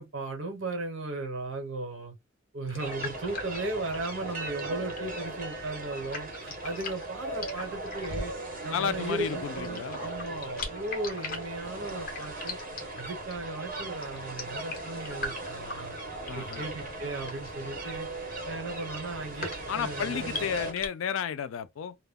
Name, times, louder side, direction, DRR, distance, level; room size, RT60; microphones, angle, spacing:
voice 1, 0.0-2.1 2.5-8.3 8.6-12.6 13.0-16.0 16.3-18.1 18.4-20.5, right 2 dB, 75° right, 1.0 m, -36 dB
sound 1, 2.7-20.9, left 3 dB, 50° left, 0.8 m, -41 dB
sound 2, 2.8-20.7, right 2 dB, 45° right, 0.9 m, -38 dB
voice 2, 8.7-10.0 16.3-16.6 19.7-22.0, left 7 dB, 80° left, 0.4 m, -32 dB
2.2 x 2.1 x 3.4 m
head